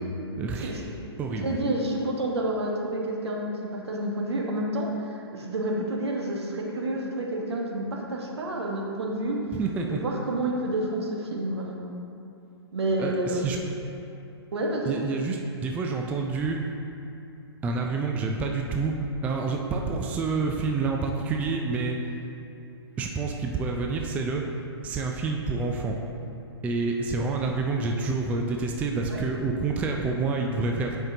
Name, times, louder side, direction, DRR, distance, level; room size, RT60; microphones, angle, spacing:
voice 1, 0.4-0.8 1.2-1.6 9.5-10.0 13.0-13.6 14.9-16.6 17.6-18.9 19.2-22.0 23.0-24.4 24.8-26.0 26.6-31.0, right 4 dB, 10° right, 1 dB, 0.3 m, -28 dB
voice 2, 1.4-9.4 9.9-11.8 12.7-13.5 14.5-15.0 29.1-29.2, right 1 dB, 70° right, -1 dB, 1.2 m, -29 dB
8.5 x 5.3 x 2.7 m, 2.8 s
figure-of-eight pair, 125°, 14 cm